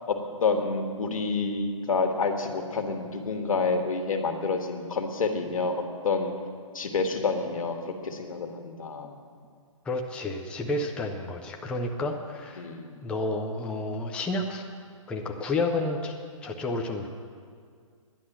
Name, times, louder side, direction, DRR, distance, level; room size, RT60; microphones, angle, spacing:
voice 1, 0.1-6.3 6.7-9.2 12.6-13.0, left 4 dB, 80° left, 5 dB, 1.6 m, -28 dB
voice 2, 9.8-12.7 13.0-14.6 15.1-16.1 16.4-17.1, left 2 dB, 5° left, 1 dB, 0.5 m, -30 dB
11.5 x 10.5 x 6.1 m, 2.1 s
hypercardioid pair, 150°, 17 cm